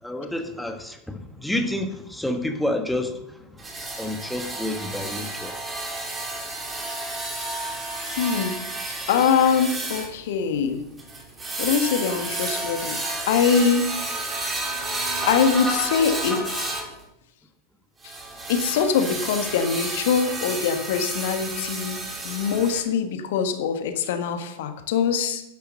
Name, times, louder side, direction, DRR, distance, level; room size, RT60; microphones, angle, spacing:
voice 1, 0.0-3.7 4.0-5.5, left 1 dB, 5° left, 6 dB, 1.5 m, -29 dB
sound 1, 3.6-16.9 18.0-22.8, right 2 dB, 15° right, 3.5 m, -31 dB
voice 2, 8.1-8.6 9.1-10.8 11.6-13.0 13.3-13.9 15.3-16.7 18.0-18.2 18.5-25.4, left 6 dB, 55° left, 8 dB, 1.4 m, -23 dB
11.0 x 10.5 x 6.5 m, 0.84 s
figure-of-eight pair, 90°, 0 cm